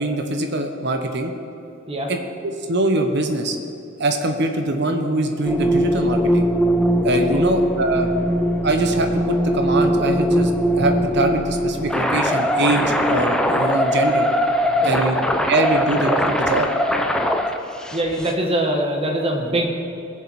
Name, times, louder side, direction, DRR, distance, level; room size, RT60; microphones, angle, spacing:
voice 1, 0.0-1.3 2.1-3.6 4.0-6.5 7.0-8.1 8.6-14.3 14.8-15.2 15.5-16.7, right 2 dB, 55° right, 6 dB, 1.1 m, -23 dB
sound 1, 5.4-18.3, equal, 5° left, 0.6 m, -20 dB
voice 2, 17.9-19.7, right 1 dB, 30° right, 1 dB, 1.5 m, -23 dB
19.5 x 7.4 x 4.3 m, 2.8 s
head